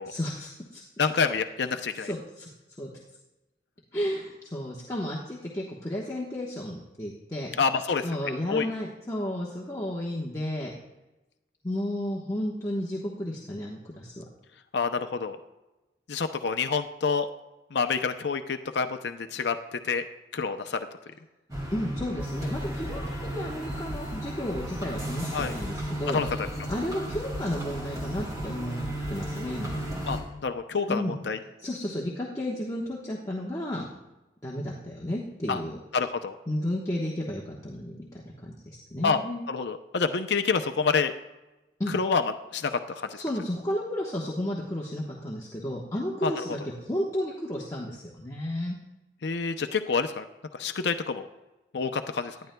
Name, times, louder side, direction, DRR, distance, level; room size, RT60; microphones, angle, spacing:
voice 1, 0.1-0.8 2.0-2.5 2.8-2.9 3.9-7.5 8.0-10.7 11.6-14.2 21.7-26.2 26.7-29.9 30.9-31.2 31.6-33.9 34.4-35.8 36.5-39.4 41.8-41.9 43.1-48.8, left 1 dB, 20° left, -4 dB, 1.1 m, -32 dB
voice 2, 1.0-2.1 7.6-8.7 14.7-15.4 16.1-17.3 17.7-20.0 20.3-20.8 25.3-25.5 26.1-26.5 30.1-30.2 30.4-31.4 35.5-35.6 35.9-36.4 39.0-39.2 39.5-41.1 41.9-42.2 42.5-43.2 46.2-46.5 49.2-50.2 50.5-51.3 51.7-52.4, left 5 dB, 70° left, 8 dB, 0.5 m, -27 dB
sound 1, 21.5-30.2, equal, 20° right, 2.2 m, -34 dB
18.5 x 11.5 x 2.2 m, 1.0 s
head